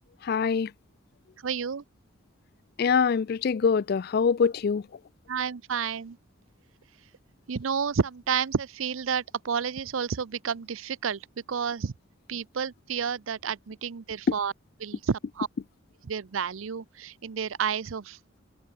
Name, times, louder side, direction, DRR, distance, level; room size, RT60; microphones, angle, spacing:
voice 1, 0.2-0.7 2.8-4.8, left 6 dB, 45° left, 0.3 m, -24 dB
voice 2, 1.4-1.8 5.3-6.2 7.5-11.9 12.3-14.5 14.8-15.5 16.0-18.2, right 6 dB, 75° right, 0.6 m, -30 dB
head